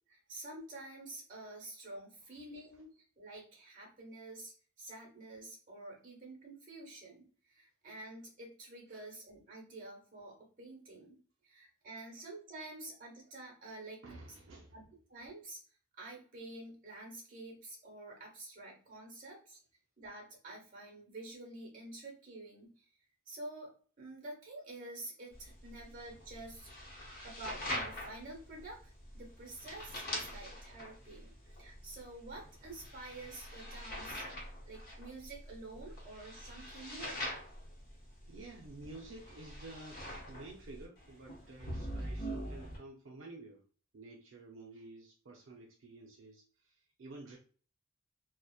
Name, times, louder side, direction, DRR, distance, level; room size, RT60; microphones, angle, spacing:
voice 1, 0.1-14.0 14.7-15.6 16.0-19.6 20.0-22.9 23.3-26.9 27.2-37.3, right 2 dB, 40° right, 0 dB, 1.0 m, -49 dB
voice 2, 14.0-14.8 38.3-43.6 43.9-47.4, right 2 dB, 70° right, -1 dB, 0.4 m, -51 dB
sound 1, 25.3-42.8, equal, 45° left, 0.8 m, -44 dB
2.7 x 2.1 x 2.3 m, 0.40 s
head